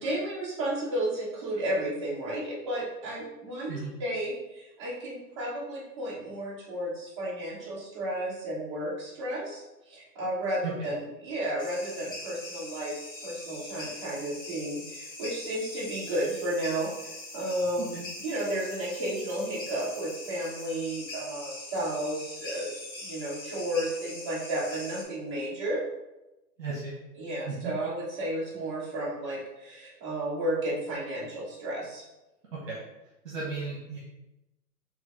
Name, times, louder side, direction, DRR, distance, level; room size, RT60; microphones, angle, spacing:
voice 1, 0.0-12.9 13.2-16.9 17.3-22.7 23.0-25.8 27.1-32.0, right 1 dB, 20° right, -9 dB, 1.2 m, -33 dB
sound 1, 11.6-25.0, left 2 dB, 55° left, 1.1 m, -42 dB
voice 2, 26.6-26.9 27.4-27.7 32.7-32.8 33.2-34.0, right 4 dB, 50° right, -5 dB, 1.3 m, -35 dB
3.7 x 3.3 x 3.7 m, 0.96 s
hypercardioid pair, 165°, 49 cm